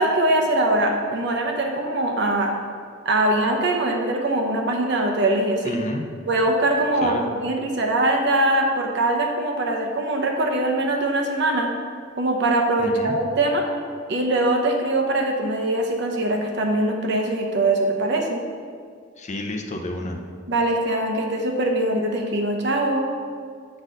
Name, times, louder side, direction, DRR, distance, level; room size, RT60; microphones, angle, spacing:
voice 1, 0.0-2.5 3.0-5.8 6.3-11.7 12.2-13.7 14.1-18.4 20.5-23.1, right 1 dB, 65° right, 2 dB, 1.0 m, -22 dB
voice 2, 5.6-6.0 7.0-7.3 12.8-13.2 19.2-20.2, left 1 dB, 40° left, 3 dB, 0.7 m, -29 dB
7.7 x 4.2 x 6.3 m, 2.1 s
head